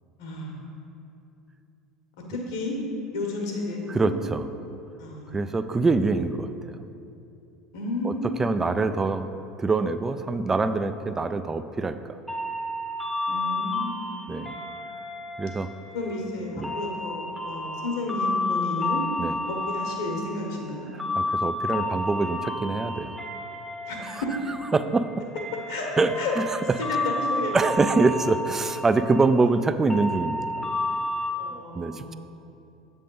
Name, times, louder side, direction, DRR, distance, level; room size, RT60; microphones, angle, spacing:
voice 1, 0.2-0.7 2.3-2.8 3.1-4.1 5.0-6.1 7.7-8.9 13.3-14.6 15.9-19.0 19.5-20.9 23.9-24.3 25.7-25.9 26.2-26.3 26.8-27.5 31.3-32.2, left 2 dB, 70° left, 0 dB, 1.2 m, -32 dB
voice 2, 3.9-4.5 5.3-6.8 8.0-8.1 8.4-9.3 9.6-12.0 14.3-14.6 15.4-15.7 16.6-16.8 19.2-19.3 20.9-23.2 24.1-24.2 24.7-25.2 26.0-26.1 27.5-30.5 31.5-32.1, right 3 dB, 20° right, 11 dB, 0.3 m, -24 dB
sound 1, 12.3-31.3, left 2 dB, ahead, 0.8 m, -31 dB
7.4 x 3.5 x 5.4 m, 2.7 s
hypercardioid pair, 75°, 2 cm